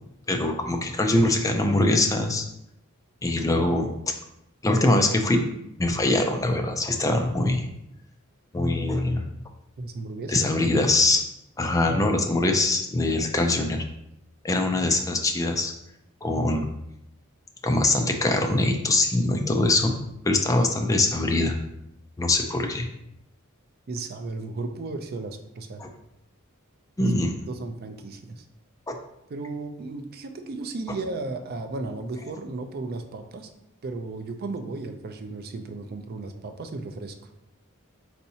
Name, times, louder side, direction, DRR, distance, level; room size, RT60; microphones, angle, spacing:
voice 1, 0.3-2.4 3.2-3.9 4.6-5.5 5.8-7.7 8.5-9.3 10.3-11.2 11.6-13.8 14.4-15.7 16.2-16.7 17.6-20.0 20.2-21.6 22.2-22.9 25.8-25.9 27.0-27.4 28.9-29.0, left 2 dB, 15° left, 4 dB, 0.4 m, -23 dB
voice 2, 9.8-10.5 23.9-25.8 27.2-28.4 29.3-33.5 33.8-37.2, right 3 dB, 45° right, 7 dB, 0.4 m, -35 dB
4.5 x 4.2 x 2.8 m, 0.83 s
head